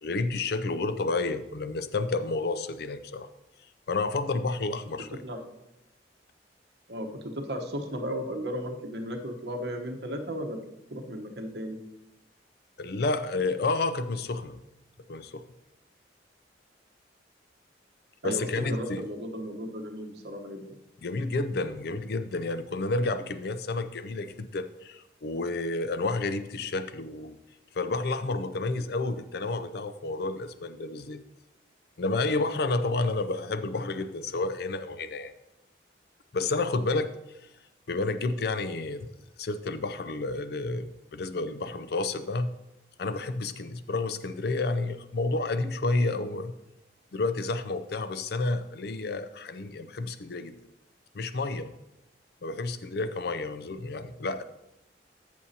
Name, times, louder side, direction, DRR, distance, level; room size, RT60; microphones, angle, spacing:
voice 1, 0.0-3.3 3.9-5.2 12.8-14.6 15.1-15.4 18.2-19.0 21.0-27.4 27.7-31.2 32.0-35.3 36.3-37.1 37.9-39.1 39.4-42.5 43.0-46.5 47.1-50.6 51.1-51.7 52.4-54.4, left 3 dB, 60° left, 11 dB, 0.5 m, -30 dB
voice 2, 6.9-10.6 10.9-11.8 18.2-20.8, equal, 65° right, 4 dB, 1.0 m, -35 dB
14.0 x 6.2 x 2.8 m, 0.89 s
head